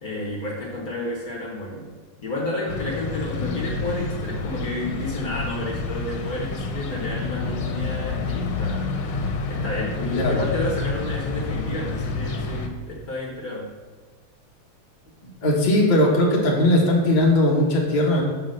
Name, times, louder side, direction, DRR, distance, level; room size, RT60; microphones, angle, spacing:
voice 1, 0.0-1.8 2.2-8.9 9.5-13.7, left 2 dB, 50° left, -3 dB, 1.4 m, -31 dB
sound 1, 2.7-12.7, left 3 dB, 75° left, 1.6 m, -29 dB
voice 2, 15.4-18.2, left 1 dB, 25° left, -4 dB, 1.1 m, -19 dB
6.4 x 3.9 x 6.4 m, 1.4 s
omnidirectional pair, 2.4 m